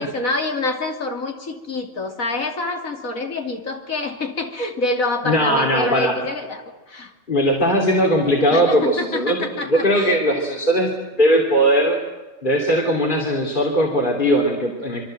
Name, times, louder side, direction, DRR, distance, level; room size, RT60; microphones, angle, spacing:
voice 1, 0.0-7.1 8.5-10.2, left 2 dB, 85° left, 4 dB, 3.3 m, -26 dB
voice 2, 5.2-6.1 7.3-9.4 9.7-10.9 11.2-12.0 12.4-15.0, equal, 35° left, 0 dB, 3.3 m, -19 dB
26.0 x 23.5 x 7.8 m, 1.2 s
omnidirectional pair, 1.4 m